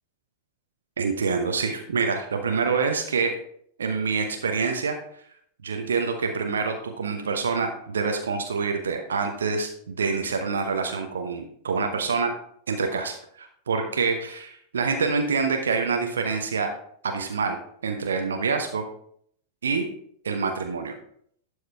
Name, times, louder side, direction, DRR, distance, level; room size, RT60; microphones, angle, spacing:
voice 1, 1.0-3.3 3.8-5.0 5.6-12.3 12.7-16.7 17.0-17.6 17.8-18.8 19.6-19.9 20.2-20.9, right 5 dB, 70° right, 4 dB, 0.9 m, -26 dB
11.5 x 4.9 x 3.5 m, 0.65 s
figure-of-eight pair, 90°, 0 cm